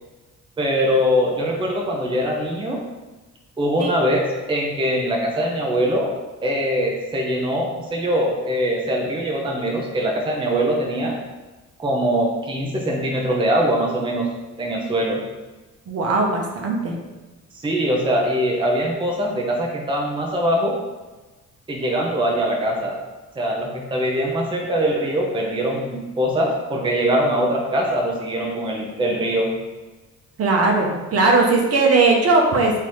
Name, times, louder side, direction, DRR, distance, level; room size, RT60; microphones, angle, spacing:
voice 1, 0.6-2.8 3.6-4.2 4.5-6.1 6.4-11.2 11.8-14.3 14.6-15.2 17.6-20.8 21.7-23.0 23.4-29.5, equal, 15° right, 0 dB, 0.6 m, -22 dB
voice 2, 15.9-16.9 30.4-32.7, right 3 dB, 55° right, 0 dB, 0.8 m, -18 dB
3.8 x 2.7 x 3.1 m, 1.2 s
cardioid pair, 90°, 30 cm